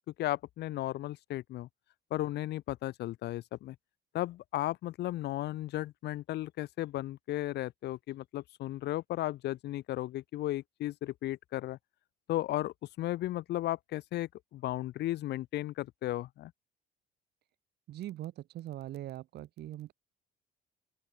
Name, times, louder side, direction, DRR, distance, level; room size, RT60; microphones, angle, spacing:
voice 1, 0.2-1.7 2.1-3.7 4.1-11.8 12.3-16.5, left 15 dB, 70° left, 1.2 m, -35 dB
voice 2, 17.9-19.9, right 13 dB, 65° right, 2.0 m, -41 dB
cardioid pair, 110°, 18 cm